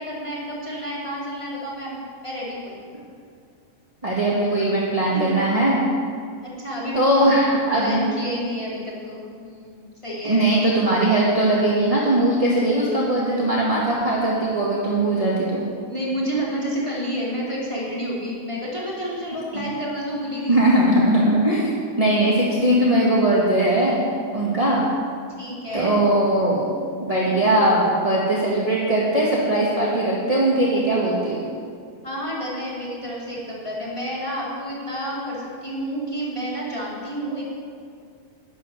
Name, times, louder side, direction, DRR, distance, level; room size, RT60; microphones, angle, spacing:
voice 1, 0.0-2.8 5.1-5.4 6.4-10.4 15.9-20.6 25.4-26.0 32.0-37.5, equal, 10° left, -7 dB, 3.4 m, -30 dB
voice 2, 4.0-5.8 6.9-8.0 10.2-15.6 19.5-19.6 20.5-21.7 22.0-24.0 24.3-24.8 25.7-26.7 27.0-31.4, right 1 dB, 15° right, -6 dB, 1.3 m, -20 dB
11.5 x 10.5 x 6.8 m, 2.2 s
omnidirectional pair, 3.5 m